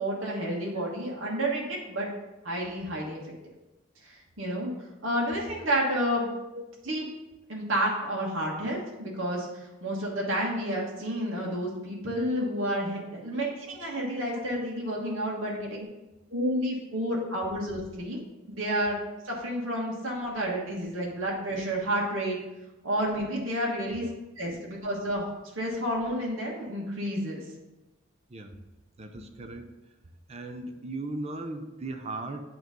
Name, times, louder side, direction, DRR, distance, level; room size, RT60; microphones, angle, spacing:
voice 1, 0.0-2.1 2.4-3.2 4.0-4.7 5.0-6.3 6.9-7.0 7.5-15.8 16.3-18.2 18.5-19.0 19.2-22.4 22.8-24.0 24.4-25.3 25.5-27.4, equal, 70° right, -4 dB, 1.4 m, -30 dB
voice 2, 29.0-29.7 30.3-32.4, right 2 dB, 30° right, 5 dB, 0.6 m, -38 dB
8.8 x 3.1 x 5.2 m, 1.0 s
head